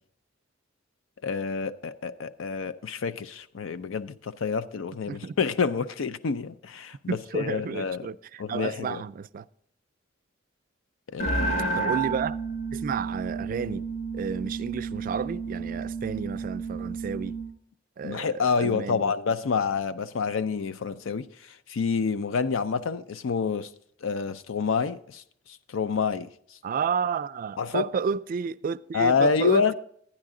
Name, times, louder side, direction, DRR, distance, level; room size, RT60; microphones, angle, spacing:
voice 1, 1.2-8.1 8.4-9.0 11.1-11.9 18.0-23.7 24.0-25.2 25.7-26.3 27.6-27.8 28.9-29.7, left 5 dB, 85° left, 0.5 m, -28 dB
voice 2, 7.1-9.4 11.8-12.4 12.7-13.9 14.1-17.3 18.0-19.1 26.6-29.7, right 6 dB, 45° right, 0.3 m, -31 dB
sound 1, 11.2-17.6, right 4 dB, 35° left, 1.1 m, -31 dB
11.5 x 9.8 x 3.7 m
head